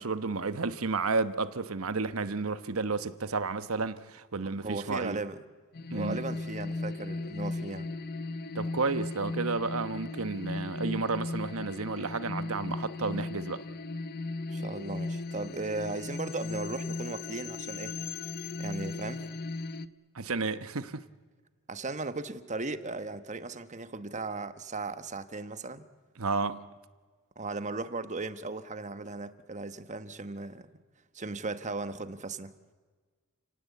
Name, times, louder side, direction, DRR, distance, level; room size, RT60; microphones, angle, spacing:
voice 1, 0.0-5.2 5.9-6.3 8.5-13.6 20.1-21.0 26.2-26.7, right 4 dB, 70° right, 1.1 m, -32 dB
voice 2, 4.6-5.4 5.9-8.0 14.5-17.9 18.6-19.2 21.7-25.8 27.4-30.7 31.1-32.5, right 3 dB, 35° right, 1.1 m, -37 dB
sound 1, 5.7-19.9, left 3 dB, 45° left, 0.7 m, -37 dB
29.5 x 18.0 x 8.3 m
head